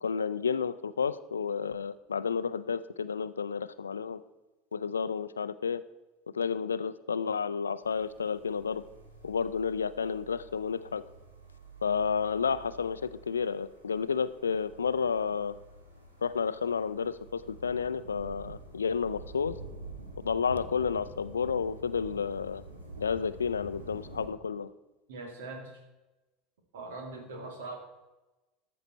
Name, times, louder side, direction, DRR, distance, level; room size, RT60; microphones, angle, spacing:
voice 1, 0.0-4.2 4.7-5.8 6.3-8.8 9.2-11.0 11.8-15.5 16.2-19.5 20.2-22.6 23.0-24.7, left 6 dB, 80° left, 15 dB, 0.4 m, -31 dB
sound 1, 7.8-24.3, right 2 dB, 85° right, 2.0 m, -48 dB
voice 2, 25.1-25.8 26.7-27.8, right 3 dB, 70° right, 4 dB, 2.1 m, -41 dB
13.0 x 6.9 x 4.3 m, 1.1 s
figure-of-eight pair, 75°, 0 cm